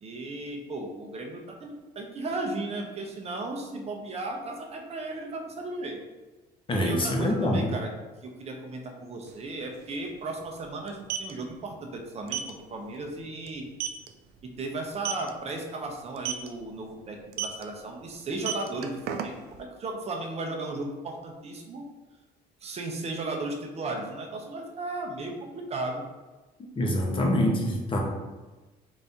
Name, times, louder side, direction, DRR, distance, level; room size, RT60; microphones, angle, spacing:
voice 1, 0.0-6.0 6.7-7.9 8.2-12.4 12.7-13.7 14.4-21.9 22.6-26.0, right 2 dB, 40° right, 2 dB, 0.8 m, -35 dB
voice 2, 6.7-7.7 26.8-28.0, left 1 dB, 30° left, 0 dB, 0.9 m, -25 dB
sound 1, 9.3-9.4 9.6-9.8 10.8-11.3 12.3-12.5 12.9-13.1 13.5-13.6 13.8-14.1 14.9-15.3 16.2-16.5 17.3-17.6 18.3-19.6, right 9 dB, 75° right, 0.4 m, -31 dB
4.1 x 2.7 x 3.5 m, 1.2 s
cardioid pair, 110°, 17 cm